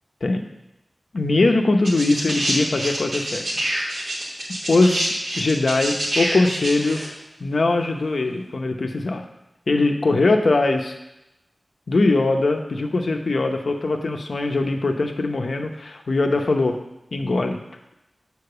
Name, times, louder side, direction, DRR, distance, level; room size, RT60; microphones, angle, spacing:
voice 1, 1.1-3.5 4.7-7.0 7.4-9.2 9.7-10.9 11.9-16.8 17.1-17.6, left 2 dB, 70° left, 4 dB, 0.8 m, -21 dB
sound 1, 1.8-7.1 8.1-8.2, right 1 dB, 90° right, 2.6 m, -26 dB
6.7 x 4.7 x 6.8 m, 0.92 s
wide cardioid pair, 85°, 0 cm